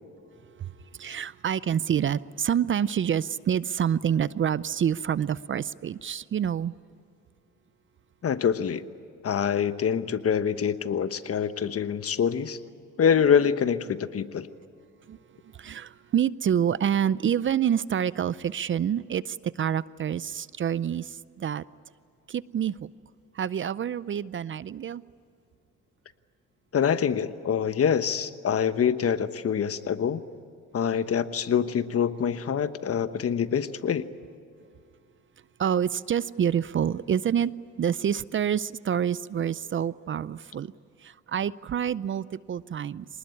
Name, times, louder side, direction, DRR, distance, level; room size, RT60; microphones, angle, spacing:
voice 1, 1.0-6.7 15.1-15.2 15.6-21.6 22.3-22.9 23.4-25.0 35.6-37.5 37.8-40.7 41.0-43.1, right 9 dB, 40° right, 19 dB, 0.5 m, -27 dB
voice 2, 8.2-8.8 9.2-12.6 13.0-14.5 26.7-30.2 30.7-34.1, left 7 dB, 50° left, 12 dB, 1.2 m, -25 dB
25.0 x 19.5 x 9.7 m, 2.5 s
cardioid pair, 90°, 30 cm